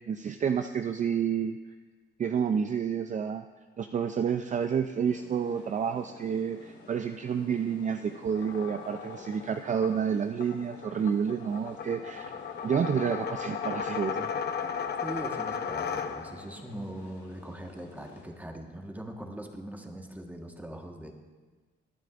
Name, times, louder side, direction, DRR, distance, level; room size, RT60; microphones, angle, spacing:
voice 1, 0.1-1.6 2.2-3.4 3.8-12.3 12.6-14.3, right 7 dB, 40° right, 7 dB, 0.5 m, -29 dB
sound 1, 5.0-18.2, left 3 dB, 75° left, 4.5 m, -52 dB
sound 2, 8.2-16.6, left 6 dB, 55° left, 0.8 m, -36 dB
voice 2, 15.0-21.1, right 1 dB, 10° right, 3 dB, 1.4 m, -41 dB
22.5 x 9.2 x 2.5 m, 1.3 s
cardioid pair, 90°, 20 cm